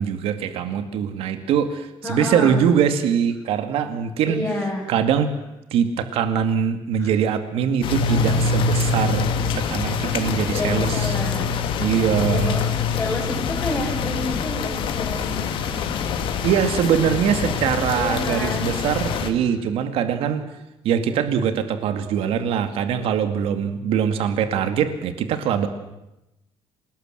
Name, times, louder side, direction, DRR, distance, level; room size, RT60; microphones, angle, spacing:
voice 1, 0.0-4.4 4.9-5.3 5.7-11.1 11.8-12.6 16.4-20.4 20.8-25.7, right 8 dB, 75° right, 9 dB, 2.4 m, -22 dB
voice 2, 2.0-2.6 4.3-4.9 7.0-7.1 10.5-11.5 12.2-15.8 17.9-18.7, left 1 dB, 10° left, -7 dB, 5.9 m, -29 dB
sound 1, 7.8-19.3, left 5 dB, 60° left, 2.2 m, -24 dB
27.5 x 19.0 x 7.7 m, 0.93 s
cardioid pair, 175°, 10 cm